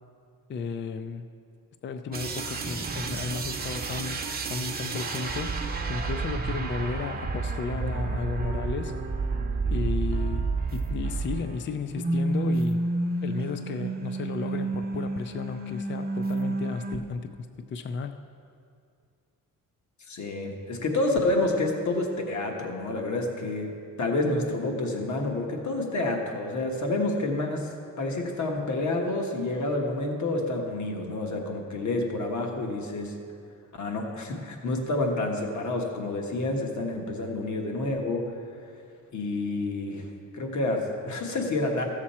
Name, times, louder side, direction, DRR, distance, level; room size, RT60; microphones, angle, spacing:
voice 1, 0.5-1.3 1.8-4.2 4.5-5.6 5.9-8.9 9.7-12.8 13.2-18.2, left 5 dB, 35° left, 10 dB, 0.4 m, -34 dB
sound 1, 2.1-11.7 11.9-17.0, right 3 dB, 30° right, 0.7 m, -30 dB
voice 2, 20.1-23.7 24.0-33.2 33.7-38.7 39.1-41.8, left 2 dB, 60° left, 2 dB, 1.3 m, -29 dB
14.5 x 7.4 x 4.3 m, 2.4 s
wide cardioid pair, 150°, 33 cm